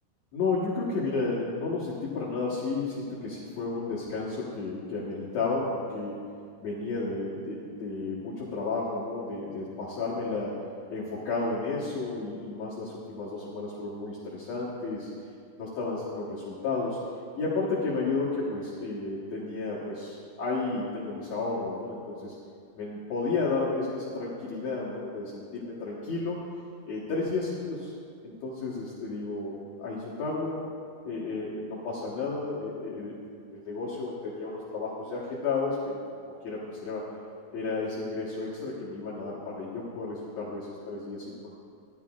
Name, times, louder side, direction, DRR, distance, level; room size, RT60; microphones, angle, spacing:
voice 1, 0.3-6.2 6.6-10.5 10.9-15.1 15.6-17.0 17.3-22.3 22.8-26.4 26.9-27.9 28.2-30.6 31.0-36.0 36.4-37.0 37.5-41.5, left 3 dB, 85° left, -8 dB, 1.5 m, -32 dB
15.0 x 11.5 x 2.3 m, 2.3 s
omnidirectional pair, 5.0 m